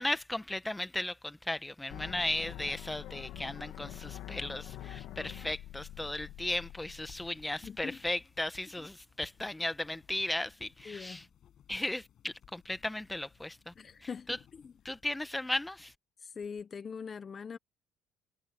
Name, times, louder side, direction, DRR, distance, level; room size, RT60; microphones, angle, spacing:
voice 1, 0.0-11.2 11.7-13.7 14.0-14.4 14.8-15.9, left 1 dB, 10° left, 1.2 m, -36 dB
sound 1, 1.9-7.9, left 13 dB, 75° left, 2.5 m, -45 dB
sound 2, 5.9-15.0, left 10 dB, 55° left, 6.9 m, -61 dB
voice 2, 7.6-8.0 8.8-8.9 10.8-11.2 13.8-14.7 16.2-17.6, left 6 dB, 35° left, 1.0 m, -42 dB
cardioid pair, 110°, 0 cm